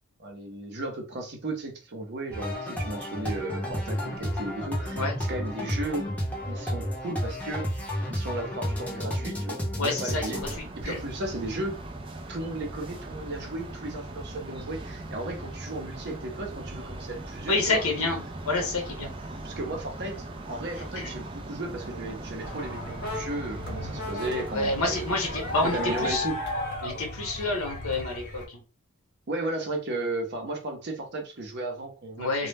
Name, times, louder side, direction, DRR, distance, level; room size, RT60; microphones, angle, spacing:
voice 1, 0.2-6.0 6.5-7.8 8.1-10.4 10.8-11.8 12.3-18.1 19.4-20.2 20.5-25.1 25.6-26.4 29.3-32.5, right 2 dB, 50° right, 2 dB, 0.7 m, -35 dB
sound 1, 2.3-10.5, equal, 5° left, 0.6 m, -31 dB
voice 2, 9.8-11.0 17.5-18.2 18.5-19.1 20.9-21.1 24.5-26.2 26.8-28.6 32.2-32.5, left 2 dB, 80° left, 2 dB, 0.8 m, -28 dB
sound 2, 10.3-26.1, right 2 dB, 25° right, 0.3 m, -39 dB
sound 3, 22.4-28.4, left 2 dB, 50° left, 0.8 m, -35 dB
2.2 x 2.0 x 3.2 m, 0.33 s
head